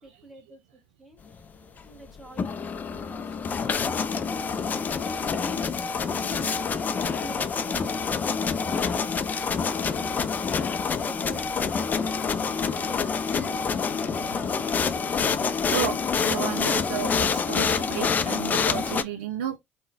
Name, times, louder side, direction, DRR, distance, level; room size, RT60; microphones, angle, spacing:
voice 1, 0.0-1.2 1.8-5.4 6.3-9.3 9.6-9.8 11.0-12.6 13.0-14.7, right 2 dB, 5° right, 1.2 m, -48 dB
sound 1, 2.2-19.0, left 5 dB, 30° left, 0.4 m, -27 dB
voice 2, 12.6-13.1 15.7-16.0 16.2-19.6, right 9 dB, 70° right, 0.4 m, -33 dB
3.6 x 2.1 x 2.5 m
figure-of-eight pair, 60°, 6 cm